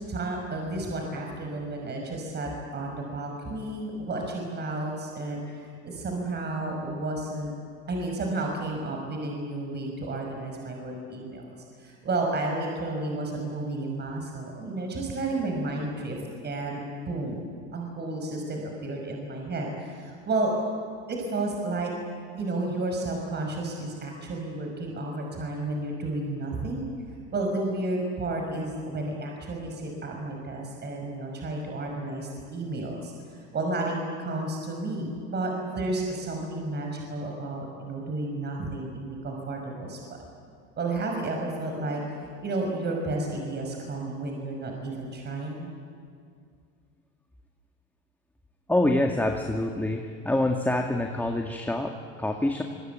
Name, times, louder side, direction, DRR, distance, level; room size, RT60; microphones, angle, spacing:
voice 1, 0.1-7.5 7.9-11.4 11.8-16.2 16.4-17.4 17.7-20.5 21.1-21.9 22.3-26.9 27.3-40.2 40.8-42.0 42.4-45.7, right 2 dB, 30° right, 1 dB, 5.9 m, -32 dB
voice 2, 48.7-52.6, left 1 dB, 5° left, 3 dB, 1.9 m, -26 dB
25.5 x 22.5 x 9.3 m, 2.2 s
supercardioid pair, 105°, 33 cm